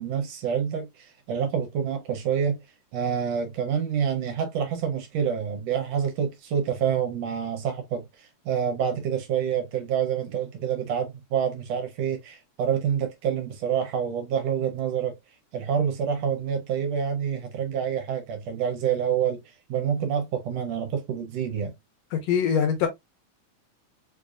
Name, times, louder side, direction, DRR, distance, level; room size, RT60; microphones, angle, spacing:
voice 1, 0.0-2.6 2.9-15.2 15.5-21.7, right 8 dB, 70° right, 1.7 m, -27 dB
voice 2, 22.1-22.9, left 7 dB, 70° left, 1.7 m, -23 dB
4.7 x 2.6 x 2.4 m
omnidirectional pair, 3.4 m